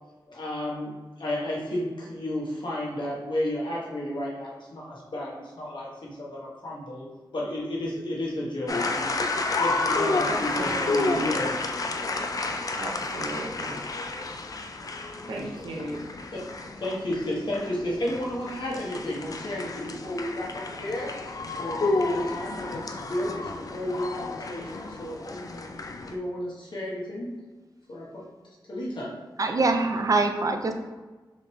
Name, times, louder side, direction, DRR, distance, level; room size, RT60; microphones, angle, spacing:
voice 1, 0.3-7.1 7.3-11.5 12.5-12.6 15.4-15.5 16.3-16.4 16.7-21.1 21.5-25.6 26.0-27.3 27.9-28.2 28.7-29.1, left 1 dB, 70° left, -5 dB, 1.1 m, -32 dB
sound 1, 8.7-26.1, left 3 dB, 45° left, 0.3 m, -31 dB
voice 2, 10.3-11.5 12.8-13.8 15.3-16.1, right 2 dB, 80° right, -2 dB, 0.7 m, -36 dB
voice 3, 29.4-30.7, right 3 dB, 45° right, 5 dB, 0.4 m, -24 dB
4.0 x 3.2 x 3.0 m, 1.2 s
wide cardioid pair, 85°, 8 cm